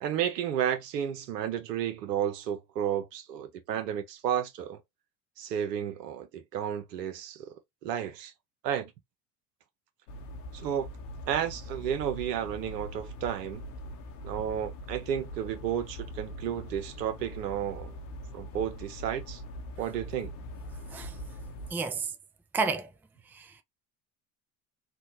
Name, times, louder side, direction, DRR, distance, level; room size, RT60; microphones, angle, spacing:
voice 1, 0.0-4.8 5.4-7.5 7.8-8.3 8.6-8.9 10.5-10.9 11.3-13.6 14.2-17.9 18.3-19.4 19.8-20.3, right 9 dB, 85° right, 0.9 m, -32 dB
sound 1, 10.1-21.7, equal, 70° left, 1.0 m, -42 dB
voice 2, 21.7-22.2 22.5-22.9 23.2-23.6, right 4 dB, 5° right, 0.3 m, -32 dB
3.5 x 2.2 x 2.8 m
hypercardioid pair, 70°, 47 cm